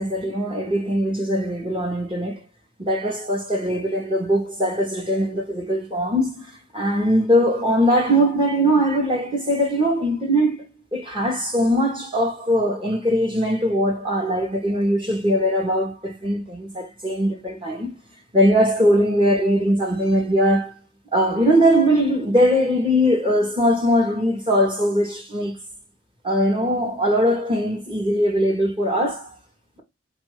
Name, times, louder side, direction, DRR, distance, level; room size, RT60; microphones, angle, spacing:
voice 1, 0.0-2.4 2.8-10.6 10.9-17.9 18.3-20.7 21.1-25.6 26.2-29.3, equal, 30° right, 1.1 m, -21 dB
4.3 x 2.6 x 4.8 m
head